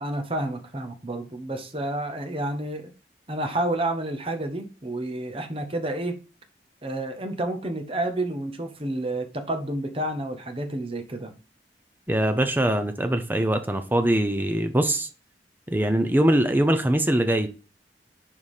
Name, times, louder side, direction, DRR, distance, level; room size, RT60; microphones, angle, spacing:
voice 1, 0.0-2.9 3.3-6.2 6.8-11.3, right 1 dB, 30° right, 1.0 m, -30 dB
voice 2, 12.1-15.1 15.7-17.5, right 1 dB, 10° right, 0.7 m, -22 dB
5.5 x 4.7 x 4.9 m
head